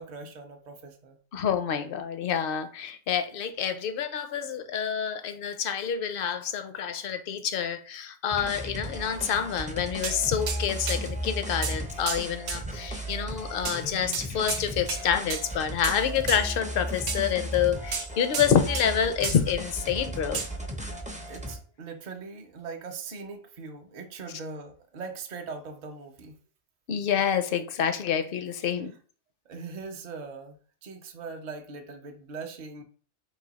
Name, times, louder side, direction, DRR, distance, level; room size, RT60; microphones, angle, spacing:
voice 1, 0.0-1.2 21.3-26.4 28.6-28.7 29.5-32.8, right 4 dB, 50° right, 3 dB, 0.6 m, -41 dB
voice 2, 1.3-20.4 26.9-28.9, left 8 dB, 65° left, 9 dB, 0.7 m, -28 dB
sound 1, 8.3-21.6, equal, 15° right, 0.3 m, -35 dB
sound 2, 10.0-10.2 10.5-10.6 10.9-11.0 11.6-11.8 12.1-12.2 12.5-12.6 13.6-13.8 14.1-14.6 14.9-15.0 15.3-15.5 15.8-16.0 16.3-16.4 17.1-17.2 17.9-18.9 19.2-19.4 20.3-20.5, right 6 dB, 75° right, 0.9 m, -32 dB
4.0 x 2.6 x 3.9 m, 0.42 s
omnidirectional pair, 1.2 m